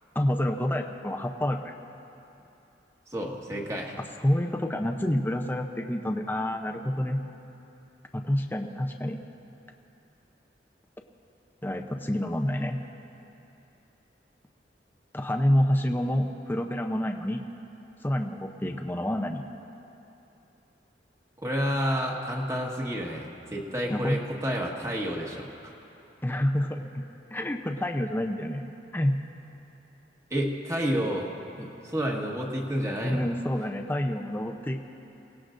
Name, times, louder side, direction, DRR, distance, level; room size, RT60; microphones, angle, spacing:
voice 1, 0.1-1.7 4.2-7.2 8.1-9.2 11.6-12.8 15.1-17.4 18.0-19.4 23.9-24.2 26.2-26.9 27.3-28.6 28.9-29.2 33.0-34.8, left 1 dB, 10° left, 2 dB, 0.6 m, -28 dB
voice 2, 3.1-4.0 21.4-25.7 30.3-31.3 31.6-33.3, equal, 20° right, -1 dB, 1.6 m, -30 dB
27.5 x 17.5 x 2.6 m, 2.9 s
head